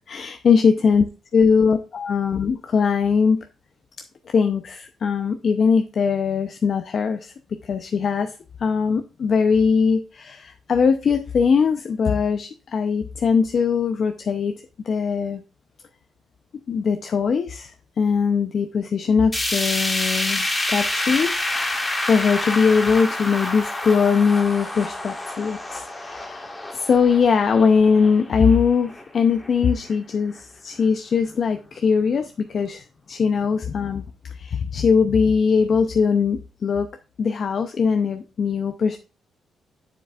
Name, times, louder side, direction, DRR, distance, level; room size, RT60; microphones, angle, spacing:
voice 1, 0.1-1.0 1.3-3.4 4.3-7.3 7.6-8.3 8.6-14.5 14.8-15.4 16.7-36.9 37.2-39.0, left 5 dB, 50° left, 7 dB, 0.5 m, -21 dB
sound 1, 19.3-29.5 29.9-30.0 30.4-30.5 31.3-31.4, left 1 dB, 15° left, 1.6 m, -28 dB
7.5 x 6.9 x 2.4 m, 0.32 s
cardioid pair, 115°, 0 cm